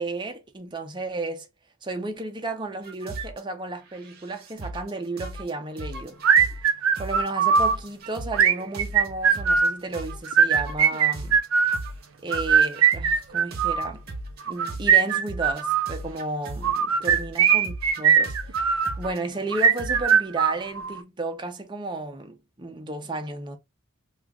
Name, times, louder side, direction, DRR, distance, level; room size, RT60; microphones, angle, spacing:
voice 1, 0.0-1.5 1.8-6.2 7.0-11.4 12.2-14.0 14.5-23.6, right 2 dB, 20° right, 0.6 m, -33 dB
sound 1, 2.8-3.4 3.9-4.9 5.2-5.5 5.8-6.7 6.9-7.3 7.5-9.7 9.9-14.4 14.6-16.8 17.0-19.2 19.8-20.3, right 2 dB, 50° right, 0.9 m, -37 dB
sound 2, 6.2-7.8 8.3-9.8 10.3-11.8 12.3-13.9 14.5-15.9 16.6-18.9 19.5-21.0, right 7 dB, 80° right, 0.5 m, -20 dB
3.1 x 2.4 x 3.4 m
head